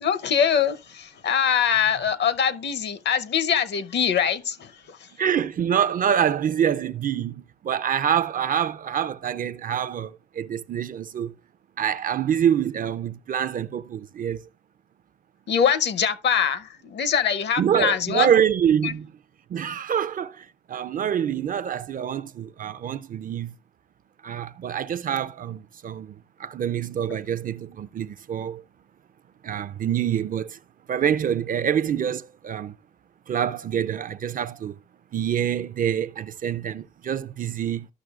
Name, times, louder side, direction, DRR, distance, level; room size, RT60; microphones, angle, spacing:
voice 1, 0.0-5.0 15.5-18.3 18.8-18.9, left 7 dB, 60° left, 0.8 m, -23 dB
voice 2, 5.2-11.3 11.8-14.4 17.6-19.1 19.5-23.5 24.2-28.6 29.4-30.6 30.9-32.7 33.3-34.7 35.1-37.9, right 9 dB, 45° right, 0.4 m, -26 dB
14.0 x 6.0 x 2.4 m
cardioid pair, 90°, 20 cm